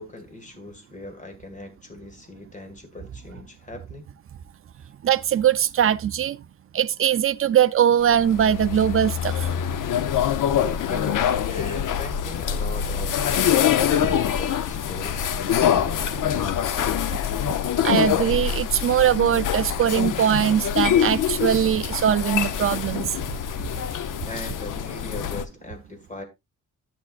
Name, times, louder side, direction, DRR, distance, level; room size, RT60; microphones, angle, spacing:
voice 1, 0.0-4.1 10.9-17.0 23.9-26.2, left 2 dB, 25° left, 1.9 m, -40 dB
voice 2, 5.0-6.4 6.7-9.5 17.8-23.1, right 9 dB, 45° right, 0.5 m, -21 dB
sound 1, 8.0-25.4, left 9 dB, 90° left, 0.7 m, -25 dB
10.5 x 8.6 x 2.5 m
wide cardioid pair, 145°, 31 cm